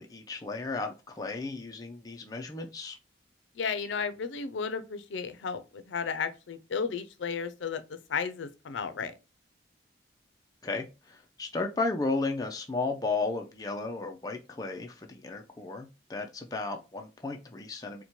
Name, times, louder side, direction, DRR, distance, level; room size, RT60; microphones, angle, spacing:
voice 1, 0.0-3.0 10.6-18.0, left 3 dB, 20° left, 0.3 m, -34 dB
voice 2, 3.6-9.1, left 6 dB, 85° left, 0.5 m, -34 dB
4.2 x 2.2 x 2.9 m
head